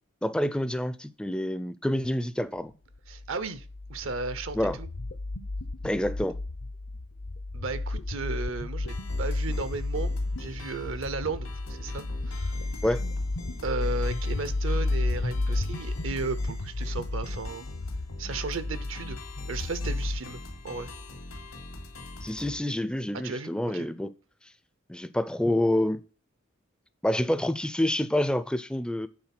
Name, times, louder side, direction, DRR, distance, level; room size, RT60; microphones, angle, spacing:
voice 1, 0.2-2.7 4.5-4.8 5.8-6.4 12.8-13.0 22.2-24.1 24.9-26.0 27.0-29.1, left 1 dB, 5° left, 0.4 m, -27 dB
sound 1, 3.1-20.2, left 2 dB, 65° left, 0.7 m, -32 dB
voice 2, 3.1-4.9 7.5-10.1 10.4-12.5 13.6-17.6 18.2-19.2 19.5-20.9 23.1-23.9, right 3 dB, 70° right, 0.7 m, -35 dB
sound 2, 8.9-22.6, left 1 dB, 90° left, 2.4 m, -43 dB
8.8 x 4.2 x 5.9 m
head